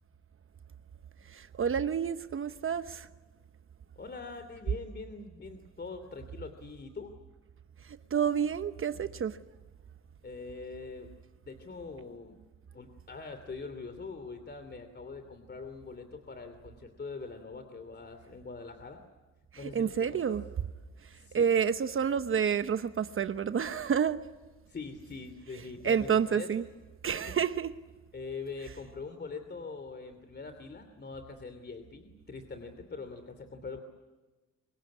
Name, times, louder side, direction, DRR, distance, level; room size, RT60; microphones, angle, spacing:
voice 1, 1.3-3.1 8.1-9.4 19.6-20.4 21.3-24.2 25.8-26.6 27.0-27.7, right 7 dB, 45° right, 1.0 m, -29 dB
voice 2, 4.0-7.1 10.2-11.1 11.4-12.4 12.7-19.0 19.5-20.4 21.1-21.5 24.7-26.5 28.1-33.8, left 4 dB, 35° left, 2.9 m, -43 dB
25.0 x 22.0 x 9.7 m
cardioid pair, 90°, 30 cm